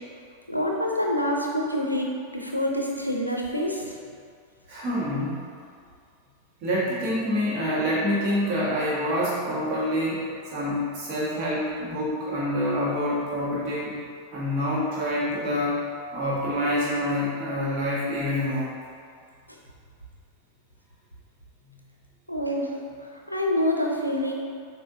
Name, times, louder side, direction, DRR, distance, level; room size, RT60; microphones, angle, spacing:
voice 1, 0.5-3.9 19.5-19.6 22.3-22.8 23.3-24.3, left 1 dB, 90° left, 0 dB, 0.5 m, -26 dB
voice 2, 4.7-5.4 6.6-10.2 10.5-13.9 14.3-15.8 16.1-18.7 21.6-21.7, equal, 40° right, -7 dB, 1.5 m, -26 dB
7.0 x 2.6 x 2.7 m, 2.2 s
figure-of-eight pair, 90°, 0 cm